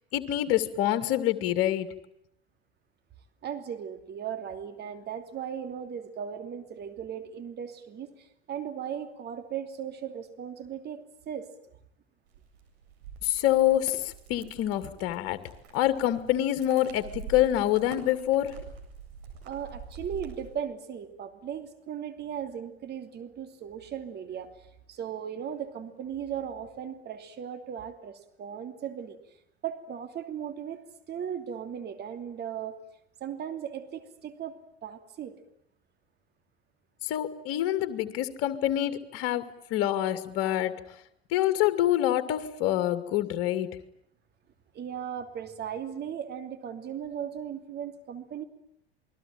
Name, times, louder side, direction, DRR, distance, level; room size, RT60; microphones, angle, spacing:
voice 1, 0.1-1.9 13.2-15.4 15.7-18.6 37.0-39.4 39.7-40.8 41.3-43.7, left 13 dB, 45° left, 12 dB, 2.5 m, -26 dB
voice 2, 3.4-11.5 19.4-29.2 29.6-30.8 31.1-32.8 33.2-35.4 44.7-48.4, right 8 dB, 30° right, 8 dB, 2.8 m, -37 dB
sound 1, 12.3-20.6, right 5 dB, 55° right, 8.0 m, -46 dB
28.0 x 21.5 x 9.0 m, 0.74 s
figure-of-eight pair, 75°, 32 cm